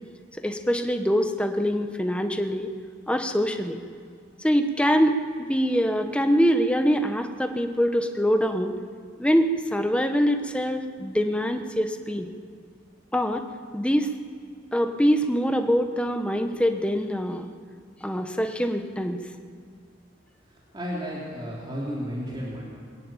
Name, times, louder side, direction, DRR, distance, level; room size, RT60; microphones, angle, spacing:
voice 1, 0.4-2.7 3.1-3.8 4.4-8.8 9.2-12.3 13.1-13.4 13.7-14.1 14.7-17.5 18.0-19.2, equal, 5° left, 6 dB, 1.1 m, -24 dB
voice 2, 20.7-22.6, equal, 25° right, -5 dB, 3.6 m, -32 dB
22.0 x 14.0 x 9.1 m, 2.2 s
head